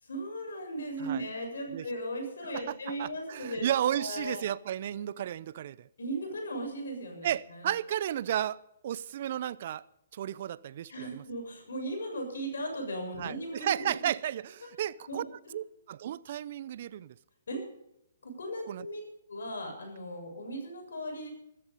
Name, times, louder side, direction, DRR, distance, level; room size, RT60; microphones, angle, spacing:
voice 1, 0.0-3.6 3.9-4.4 6.0-7.7 10.9-13.9 15.1-15.2 17.5-17.6 18.2-19.0 19.3-21.3, right 1 dB, 75° left, 7.0 m, -37 dB
voice 2, 2.5-5.9 7.2-8.6 8.8-9.8 10.1-11.2 13.2-15.2 15.5-17.2 18.7-18.9, right 11 dB, 50° right, 0.6 m, -33 dB
14.5 x 13.5 x 5.4 m
hypercardioid pair, 135°, 0 cm